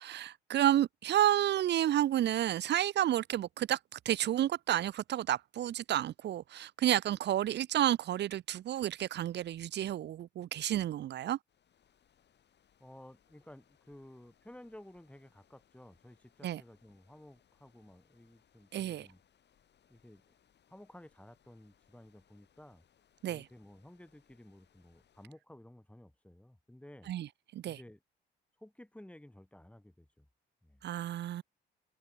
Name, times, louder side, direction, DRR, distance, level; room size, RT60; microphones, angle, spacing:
voice 1, 0.0-3.8 4.1-11.4 16.4-16.6 18.7-19.1 23.2-23.4 27.1-27.3 27.5-27.8 30.8-31.4, right 12 dB, 60° right, 0.6 m, -30 dB
sound 1, 11.5-25.3, left 9 dB, 60° left, 7.1 m, -71 dB
voice 2, 12.8-19.2 19.9-20.2 20.7-22.8 23.3-27.1 27.6-28.0 28.6-30.3 30.6-30.8, left 1 dB, 5° left, 6.5 m, -55 dB
cardioid pair, 90°, 20 cm